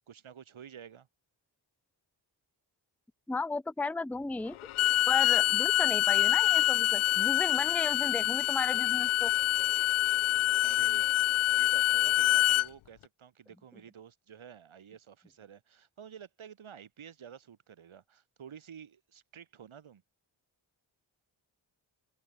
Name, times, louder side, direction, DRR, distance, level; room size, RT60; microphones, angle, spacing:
voice 1, 0.1-1.1 10.6-20.0, right 8 dB, 80° right, 4.5 m, -51 dB
voice 2, 3.3-4.6 5.1-9.3, left 3 dB, 5° left, 0.6 m, -34 dB
Bowed string instrument, 4.6-12.7, left 16 dB, 80° left, 0.6 m, -26 dB
cardioid pair, 45°, 48 cm